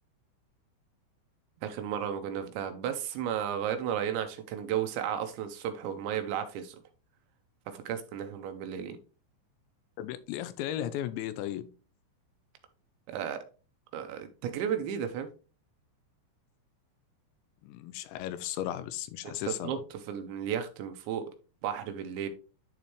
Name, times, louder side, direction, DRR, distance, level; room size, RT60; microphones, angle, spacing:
voice 1, 1.6-6.8 7.7-9.0 13.1-13.4 13.9-15.3 19.2-21.2 21.6-22.3, right 9 dB, 80° right, 2.9 m, -34 dB
voice 2, 10.0-11.7 17.6-19.8, left 12 dB, 80° left, 2.8 m, -35 dB
11.0 x 4.1 x 3.1 m
omnidirectional pair, 5.5 m